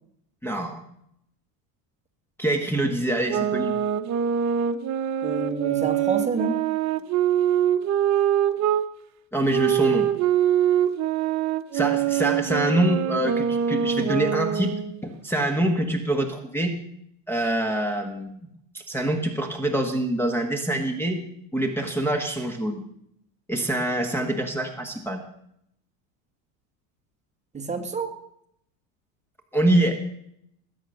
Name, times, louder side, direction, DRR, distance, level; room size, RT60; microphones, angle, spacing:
voice 1, 0.4-0.8 2.4-3.7 9.3-10.1 11.7-14.7 15.0-16.7 17.3-18.5 18.7-21.2 21.5-22.9 23.5-25.2 29.5-30.0, right 1 dB, 5° left, 5 dB, 1.5 m, -25 dB
sound 1, 3.3-8.8 9.5-15.0, right 10 dB, 40° right, 1.2 m, -24 dB
voice 2, 5.2-6.6 27.5-28.1, right 4 dB, 15° right, 5 dB, 1.7 m, -28 dB
20.5 x 8.7 x 6.5 m, 0.73 s
cardioid pair, 140°, 40 cm